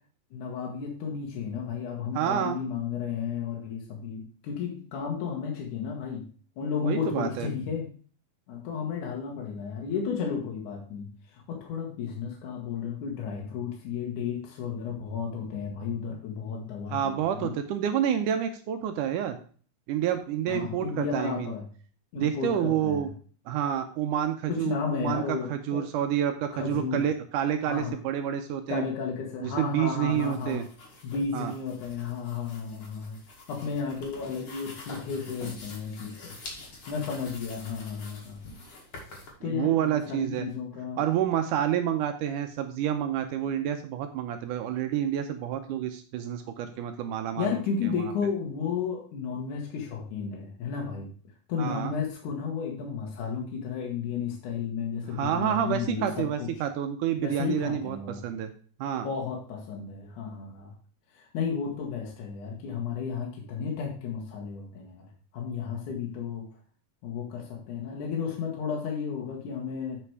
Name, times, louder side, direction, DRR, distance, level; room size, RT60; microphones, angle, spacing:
voice 1, 0.3-6.3 6.6-7.9 8.5-17.5 20.5-21.6 22.1-23.1 24.5-25.9 26.5-27.0 27.6-27.9 28.7-30.6 31.0-33.2 33.5-36.4 36.9-38.5 39.4-41.0 47.4-51.1 51.5-56.5 57.2-58.2 59.0-60.7 61.1-65.1 65.3-66.5 67.0-70.0, left 6 dB, 65° left, 0 dB, 2.7 m, -33 dB
voice 2, 2.1-2.6 6.8-7.5 16.9-19.4 19.9-21.5 22.2-23.1 23.5-28.9 29.4-30.7 31.3-31.5 39.5-40.5 41.0-48.1 51.6-51.9 55.2-58.5 58.8-59.1, right 10 dB, 75° right, 7 dB, 2.0 m, -29 dB
sound 1, 30.1-39.3, left 2 dB, 45° left, 2.4 m, -46 dB
8.0 x 5.9 x 4.7 m, 0.42 s
omnidirectional pair, 4.1 m